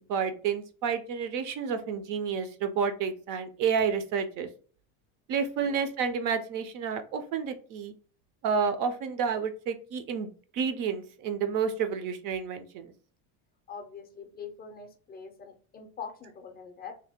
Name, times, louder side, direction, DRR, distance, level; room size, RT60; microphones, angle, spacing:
voice 1, 0.1-4.5 5.3-7.9 8.4-12.9, right 6 dB, 50° right, 9 dB, 0.5 m, -30 dB
voice 2, 13.7-16.9, left 6 dB, 25° left, 4 dB, 0.4 m, -43 dB
2.8 x 2.1 x 3.4 m, 0.41 s
cardioid pair, 130°, 42 cm